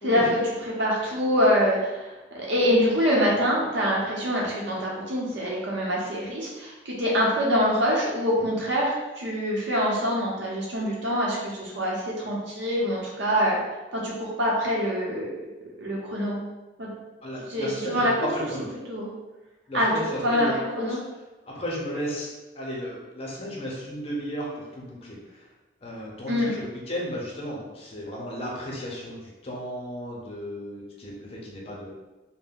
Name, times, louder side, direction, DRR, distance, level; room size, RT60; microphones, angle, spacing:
voice 1, 0.0-2.1 2.3-13.6 13.9-15.4 15.8-16.4 16.8-16.9 17.5-18.3 18.9-19.1 19.7-20.5 20.8-21.0 26.3-26.6, equal, 75° right, -4 dB, 0.8 m, -25 dB
voice 2, 17.2-18.7 19.7-21.0 21.5-22.3 22.5-25.5 25.8-31.9, equal, 30° left, -4 dB, 0.6 m, -34 dB
2.6 x 2.1 x 3.5 m, 1.1 s
head